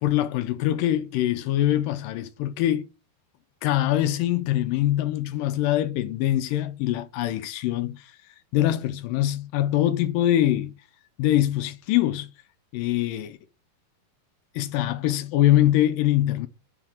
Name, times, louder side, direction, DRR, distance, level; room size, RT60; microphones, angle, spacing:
voice 1, 0.0-2.9 3.6-8.0 8.5-10.7 11.2-12.3 12.7-13.4 14.6-16.5, left 13 dB, 80° left, 2.2 m, -23 dB
7.5 x 4.0 x 6.5 m
omnidirectional pair, 4.3 m